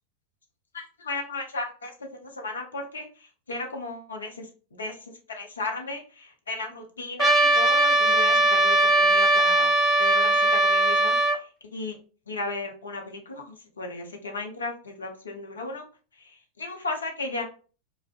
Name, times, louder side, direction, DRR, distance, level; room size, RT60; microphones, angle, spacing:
voice 1, 0.7-5.0 5.3-12.0 12.3-15.8 16.2-17.4, left 3 dB, 70° left, 2 dB, 0.6 m, -35 dB
Trumpet, 7.2-11.4, right 2 dB, 15° right, 0.4 m, -20 dB
2.4 x 2.1 x 2.4 m, 0.38 s
figure-of-eight pair, 90°, 0 cm